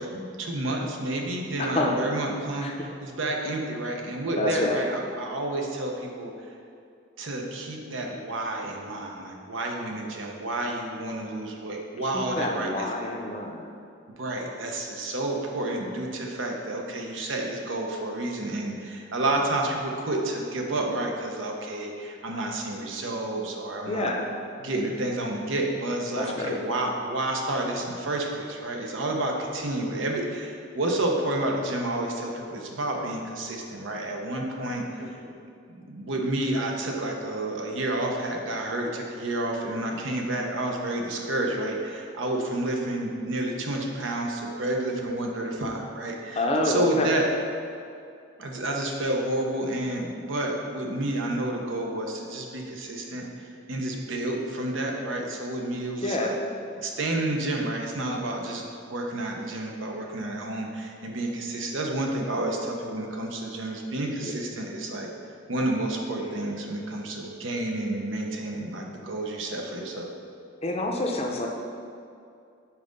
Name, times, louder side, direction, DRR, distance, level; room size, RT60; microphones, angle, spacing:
voice 1, 0.0-6.3 7.2-12.9 14.2-24.1 24.6-35.2 35.7-47.3 48.4-56.4 56.8-58.6 58.9-65.1 65.5-70.1, right 1 dB, 85° right, 1 dB, 0.8 m, -30 dB
voice 2, 1.6-2.2 2.6-2.7 4.3-4.9 12.0-13.7 23.9-24.3 26.1-26.6 35.0-35.3 46.3-47.2 56.0-56.4 64.2-64.3 70.6-71.5, left 1 dB, 30° left, 1 dB, 0.6 m, -28 dB
5.8 x 3.8 x 5.2 m, 2.4 s
head